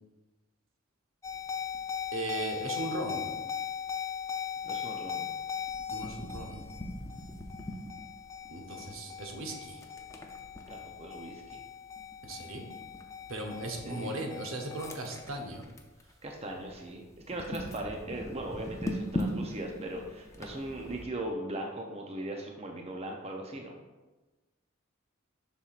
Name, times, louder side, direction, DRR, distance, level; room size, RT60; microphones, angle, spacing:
sound 1, 1.2-16.0 16.4-16.7 17.2-21.0, left 4 dB, 15° left, 0.6 m, -38 dB
voice 1, 2.1-3.4 5.9-6.6 8.5-9.8 12.2-12.6 13.3-15.6, right 2 dB, 80° right, 2 dB, 0.9 m, -37 dB
voice 2, 4.6-5.3 10.7-11.6 13.8-14.1 16.2-23.7, right 1 dB, 30° right, 1 dB, 0.6 m, -39 dB
7.0 x 5.8 x 2.5 m, 1.2 s
head